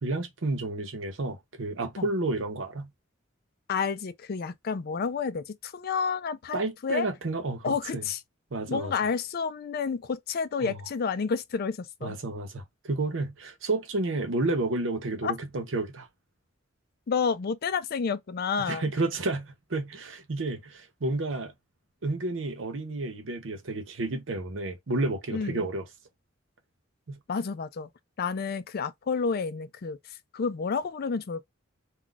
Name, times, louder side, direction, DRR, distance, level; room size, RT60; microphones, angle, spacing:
voice 1, 0.0-2.9 6.5-8.1 8.5-8.9 10.6-10.8 12.0-16.1 18.6-21.5 22.0-25.8 27.1-27.2, right 2 dB, 75° right, 0.8 m, -31 dB
voice 2, 3.7-7.1 7.6-8.2 8.7-12.2 15.2-15.3 17.1-18.9 25.3-25.6 27.3-27.9 28.2-30.0 30.3-31.4, left 5 dB, 50° left, 0.4 m, -30 dB
2.4 x 2.3 x 3.8 m
head